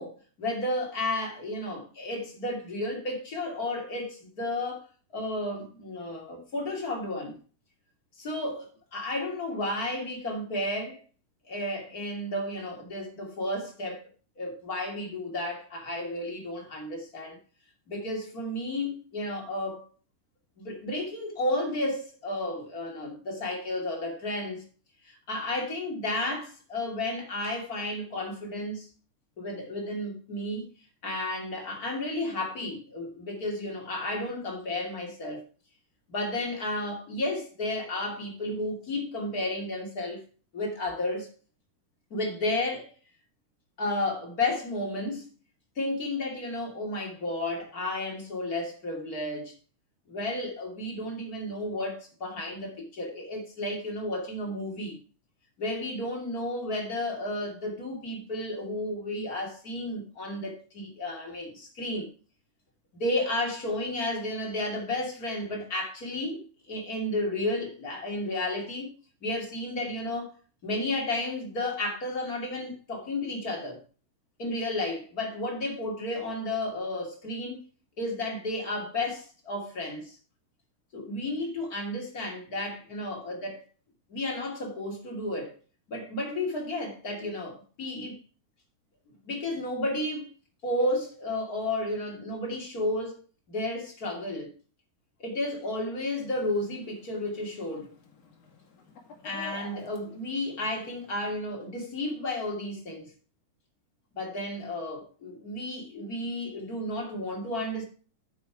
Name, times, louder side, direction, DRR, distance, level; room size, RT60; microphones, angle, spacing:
voice 1, 0.0-4.9 5.1-7.4 8.2-11.0 11.4-14.0 14.4-17.4 17.9-19.9 20.6-24.6 25.0-28.9 29.4-30.7 31.0-35.4 36.1-40.2 40.5-41.3 42.1-42.9 43.8-45.3 45.8-49.5 50.1-55.0 55.6-62.1 62.9-68.9 69.2-70.3 70.6-73.8 74.4-77.6 78.0-80.2 80.9-83.6 84.1-85.6 85.9-88.2 89.3-90.3 90.6-93.2 93.5-94.5 95.2-97.9 99.2-103.1 104.2-107.8, left 1 dB, 25° left, 2.7 m, -32 dB
Chicken rooster, 96.2-101.3, left 5 dB, 50° left, 3.1 m, -51 dB
9.2 x 8.0 x 4.7 m
omnidirectional pair, 4.1 m